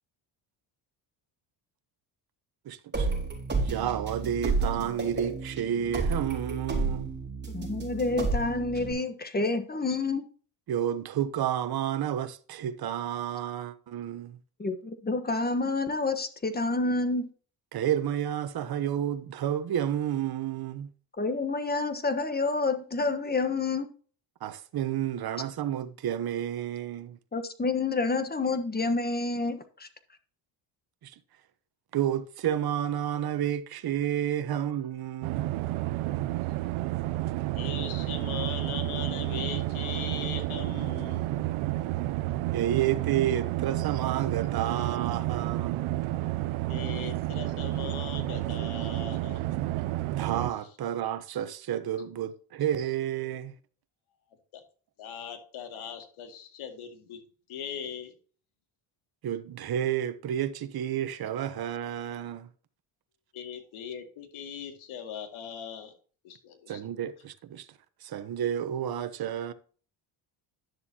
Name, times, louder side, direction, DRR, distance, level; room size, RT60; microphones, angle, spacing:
voice 1, 2.6-3.1 3.6-7.1 10.7-14.4 17.7-20.9 24.4-27.2 31.0-31.1 31.9-35.5 42.5-45.9 50.1-53.5 59.2-62.5 66.7-67.7 68.0-69.5, right 10 dB, 45° right, 1.0 m, -30 dB
sound 1, 2.9-8.9, right 3 dB, 20° right, 4.1 m, -31 dB
voice 2, 7.5-10.2 14.6-17.3 21.2-23.9 27.3-29.9, left 3 dB, 20° left, 1.2 m, -28 dB
sound 2, 35.2-50.5, right 16 dB, 75° right, 0.6 m, -31 dB
voice 3, 37.6-41.3 46.7-49.4 54.5-54.6 55.0-57.2 57.5-58.1 63.3-66.0 66.2-66.8, left 8 dB, 75° left, 2.3 m, -39 dB
10.5 x 6.9 x 2.9 m
cardioid pair, 95°, 50 cm